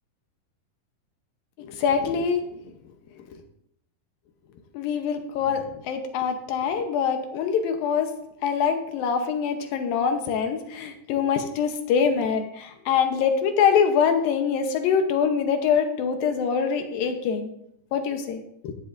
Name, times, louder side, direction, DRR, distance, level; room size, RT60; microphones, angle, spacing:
voice 1, 1.6-2.6 4.7-8.1 8.4-17.5 17.9-18.7, left 6 dB, 75° left, 6 dB, 2.6 m, -24 dB
15.5 x 11.0 x 2.6 m, 0.77 s
omnidirectional pair, 4.5 m